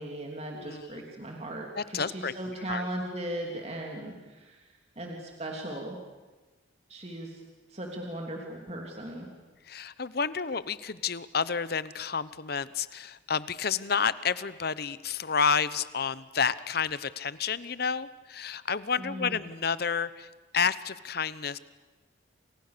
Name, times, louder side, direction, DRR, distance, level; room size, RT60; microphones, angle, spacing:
voice 1, 0.0-4.7 5.0-6.0 6.9-7.4 7.7-9.3 19.0-19.4, right 1 dB, 35° right, 0 dB, 3.2 m, -37 dB
voice 2, 0.5-1.0 1.8-2.3 2.7-2.9 9.7-20.3 20.5-21.6, left 6 dB, 50° left, 16 dB, 0.9 m, -30 dB
29.0 x 28.0 x 6.8 m, 1.2 s
head